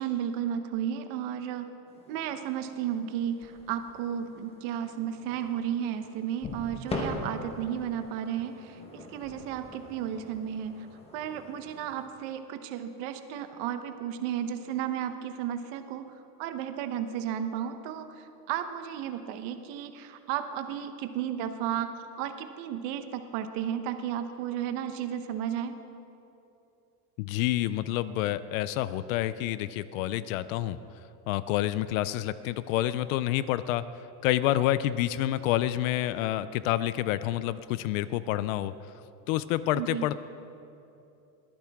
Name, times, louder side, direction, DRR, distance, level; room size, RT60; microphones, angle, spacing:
voice 1, 0.0-1.7 2.1-10.9 11.1-16.0 16.4-25.7 39.7-40.1, right 9 dB, 45° right, 9 dB, 1.0 m, -33 dB
sound 1, 1.9-12.1, left 2 dB, 15° left, 1.3 m, -42 dB
voice 2, 27.2-30.8 31.3-33.8 34.2-38.7 39.3-40.1, left 14 dB, 60° left, 15 dB, 0.5 m, -28 dB
21.5 x 15.0 x 3.6 m, 2.8 s
supercardioid pair, 170°, 47 cm